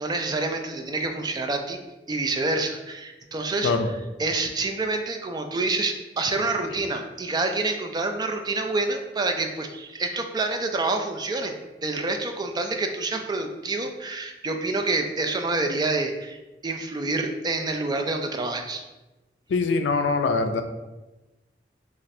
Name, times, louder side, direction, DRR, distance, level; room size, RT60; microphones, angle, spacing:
voice 1, 0.0-1.8 2.1-3.7 4.2-18.8, right 3 dB, 25° right, 5 dB, 0.3 m, -27 dB
voice 2, 19.5-20.6, left 4 dB, 85° left, 8 dB, 0.4 m, -23 dB
3.1 x 2.5 x 4.1 m, 1.1 s
head